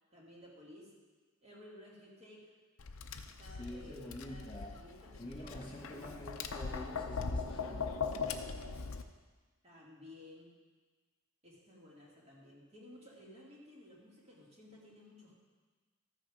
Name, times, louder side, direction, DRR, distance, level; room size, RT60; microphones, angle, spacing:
voice 1, 0.1-0.9 1.4-2.5 3.4-6.2 9.6-10.5 11.4-15.4, left 1 dB, 30° right, -4 dB, 2.3 m, -56 dB
Tap, 2.8-9.0, left 5 dB, 75° left, 0.6 m, -40 dB
voice 2, 3.5-4.8 5.2-8.1, left 1 dB, 25° left, -3 dB, 1.6 m, -47 dB
13.5 x 6.5 x 5.0 m, 1.4 s
head